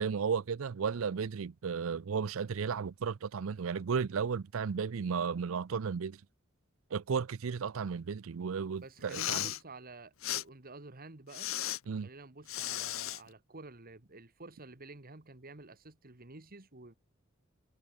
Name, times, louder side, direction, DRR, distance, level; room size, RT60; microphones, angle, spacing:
voice 1, 0.0-6.2 6.9-9.5 11.9-12.1, right 6 dB, 75° right, 0.5 m, -34 dB
voice 2, 8.8-11.5 12.0-16.9, right 3 dB, 45° right, 2.0 m, -50 dB
Respiratory sounds, 9.0-9.6 10.2-10.4 11.3-11.8 12.5-13.2, left 12 dB, 80° left, 1.2 m, -35 dB
head